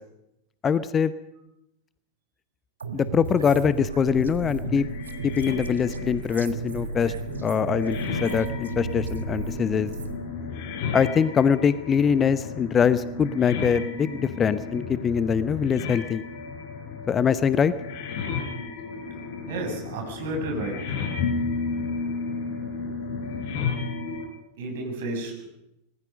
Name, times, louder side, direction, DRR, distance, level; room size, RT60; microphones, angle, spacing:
voice 1, 0.6-1.1 2.9-4.9 5.2-7.1 7.4-9.9 10.9-16.2 17.1-17.7, left 7 dB, 20° left, 15 dB, 0.9 m, -23 dB
sound 1, 2.8-10.2, right 4 dB, 70° right, 1.4 m, -34 dB
sound 2, 4.4-24.3, left 4 dB, 50° left, 4.2 m, -33 dB
voice 2, 19.5-21.0 22.8-22.9 24.6-25.5, right 2 dB, 55° right, 2 dB, 7.1 m, -32 dB
26.0 x 20.0 x 5.3 m, 0.84 s
figure-of-eight pair, 90°, 0 cm